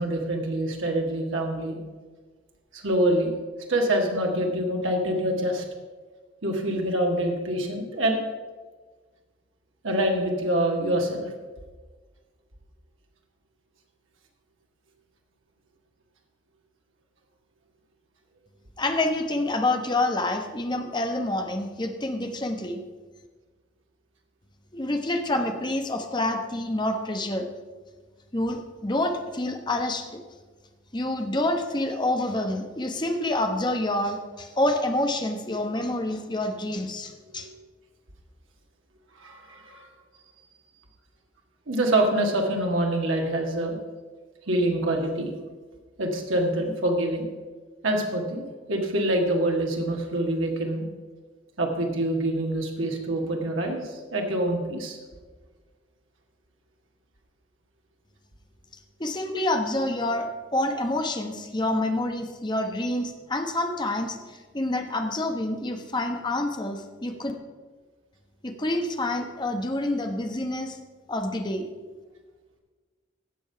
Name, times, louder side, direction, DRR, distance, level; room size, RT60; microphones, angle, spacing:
voice 1, 0.0-1.8 2.7-3.3 3.7-5.6 6.4-8.2 9.8-11.3 37.3-37.5 39.1-39.9 41.7-43.8 44.5-45.3 46.0-47.2 47.8-50.8 51.6-55.0, right 1 dB, 85° right, 1 dB, 1.6 m, -25 dB
voice 2, 18.8-22.8 24.7-27.5 28.3-30.1 30.9-37.5 59.0-67.3 68.4-70.8 71.1-71.7, left 1 dB, 25° left, 4 dB, 1.0 m, -27 dB
16.0 x 5.4 x 5.7 m, 1.4 s
head